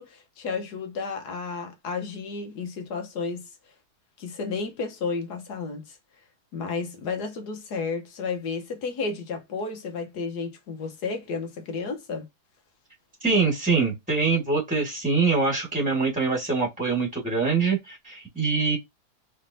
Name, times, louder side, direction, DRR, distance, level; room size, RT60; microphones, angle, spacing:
voice 1, 0.0-3.5 4.2-6.0 6.5-12.3, left 4 dB, 75° left, 1.6 m, -32 dB
voice 2, 13.2-18.8, right 4 dB, 5° right, 1.4 m, -24 dB
4.7 x 3.3 x 2.7 m
omnidirectional pair, 1.8 m